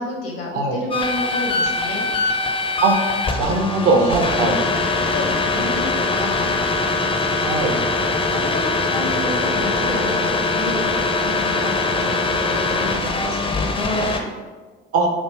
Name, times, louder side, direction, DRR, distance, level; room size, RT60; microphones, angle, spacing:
voice 1, 0.0-2.1 4.9-6.5 8.3-14.1, left 2 dB, 80° left, -1 dB, 0.9 m, -30 dB
sound 1, 0.9-14.2, left 3 dB, 20° left, 0.5 m, -22 dB
voice 2, 3.3-4.6 7.4-7.7 14.9-15.1, right 3 dB, 55° right, 2 dB, 0.8 m, -19 dB
3.3 x 2.6 x 4.5 m, 1.3 s
figure-of-eight pair, 50°, 29 cm